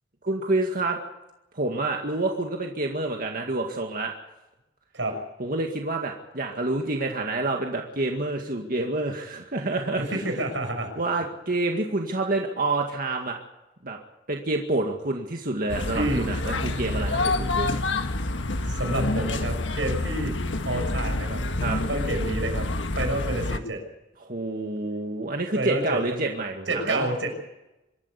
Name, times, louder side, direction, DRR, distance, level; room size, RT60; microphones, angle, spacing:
voice 1, 0.2-1.0 1.5-4.1 5.4-10.0 11.0-13.4 13.8-14.0 14.3-17.8 21.6-21.8 24.2-27.1, right 2 dB, 50° right, 2 dB, 2.0 m, -28 dB
voice 2, 10.0-10.9 15.9-16.3 18.7-20.3 20.6-21.4 21.9-22.7 22.9-23.8 25.5-26.2 26.7-27.3, right 1 dB, 90° right, 4 dB, 6.3 m, -29 dB
sound 1, 15.7-23.6, left 2 dB, 85° left, 1.5 m, -27 dB
25.5 x 13.5 x 8.3 m, 0.95 s
head